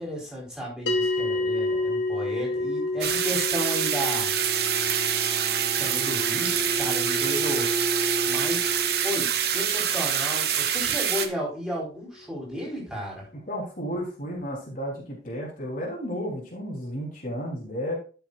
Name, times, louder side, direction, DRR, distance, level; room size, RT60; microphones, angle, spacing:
voice 1, 0.0-4.3 5.8-7.8 8.3-8.6 9.0-13.3, equal, 5° right, -5 dB, 4.3 m, -33 dB
sound 1, 0.9-11.4, left 2 dB, 75° left, 1.6 m, -32 dB
sound 2, 3.0-11.3, right 9 dB, 55° right, 0.9 m, -26 dB
Bowed string instrument, 4.2-9.4, right 1 dB, 25° right, 1.2 m, -33 dB
voice 2, 13.3-18.0, equal, 45° left, -3 dB, 3.3 m, -33 dB
12.5 x 6.9 x 2.5 m, 0.35 s
head